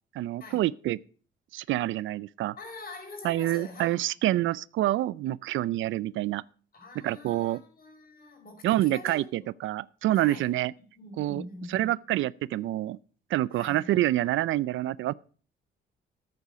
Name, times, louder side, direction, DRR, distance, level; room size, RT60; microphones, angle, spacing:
voice 1, 0.1-1.0 1.5-2.6 3.2-6.4 7.0-7.6 8.6-10.7 11.2-13.0 13.3-15.1, right 15 dB, 75° right, 0.4 m, -27 dB
voice 2, 2.6-4.0 6.7-9.2 10.1-10.5 10.9-11.9 13.5-13.9, left 2 dB, 50° left, 5.0 m, -44 dB
13.5 x 8.3 x 5.1 m
cardioid pair, 90°, 20 cm